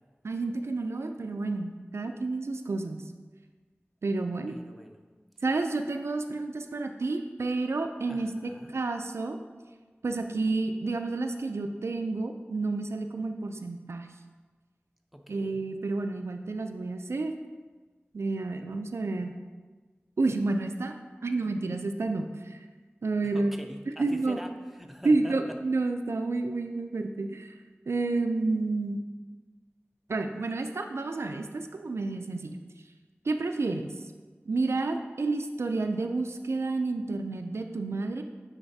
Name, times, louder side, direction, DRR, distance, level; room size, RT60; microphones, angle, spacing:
voice 1, 0.2-3.0 4.0-4.5 5.4-9.4 10.0-14.1 15.3-17.3 18.1-19.3 20.2-20.9 21.2-22.7 23.0-23.6 24.0-24.4 25.0-27.5 27.9-29.0 30.1-32.5 33.3-33.9 34.5-38.2, right 3 dB, 80° right, 6 dB, 0.3 m, -30 dB
voice 2, 4.5-5.0 8.1-8.7 15.1-15.6 23.3-25.3, equal, ahead, 3 dB, 0.6 m, -44 dB
9.0 x 3.9 x 2.7 m, 1.4 s
wide cardioid pair, 55°, 4 cm